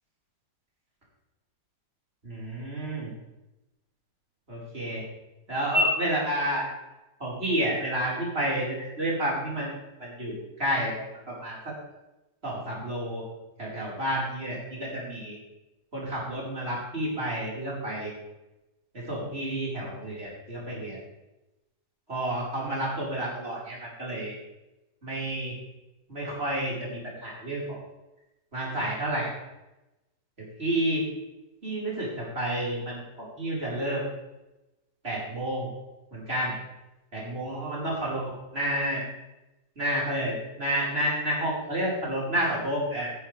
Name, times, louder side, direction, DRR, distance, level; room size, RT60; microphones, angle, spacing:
voice 1, 2.2-3.1 4.5-5.0 5.5-6.6 7.2-9.7 10.0-11.6 12.4-13.2 13.6-15.4 15.9-18.1 18.9-21.0 22.1-24.3 25.0-25.5 26.1-27.8 28.5-29.3 30.4-31.1 31.6-34.1 35.0-35.7 36.1-36.5 37.1-39.0 39.8-43.1, right 1 dB, 35° right, -6 dB, 4.9 m, -30 dB
14.0 x 12.5 x 3.4 m, 0.98 s
omnidirectional pair, 1.8 m